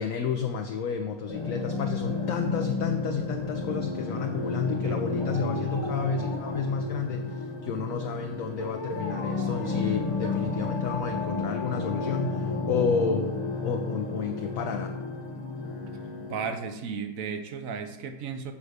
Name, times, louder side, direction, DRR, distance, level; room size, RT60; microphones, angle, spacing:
voice 1, 0.0-13.3 13.6-14.9, left 5 dB, 65° left, 5 dB, 0.8 m, -31 dB
sound 1, 1.3-16.5, left 3 dB, 50° left, 0.3 m, -32 dB
Dog, 1.4-3.5 5.1-6.8 8.6-10.7 11.0-11.1, left 1 dB, 20° left, 1.1 m, -40 dB
voice 2, 16.3-18.5, right 6 dB, 60° right, 7 dB, 1.0 m, -34 dB
7.1 x 4.8 x 6.6 m, 1.0 s
omnidirectional pair, 1.9 m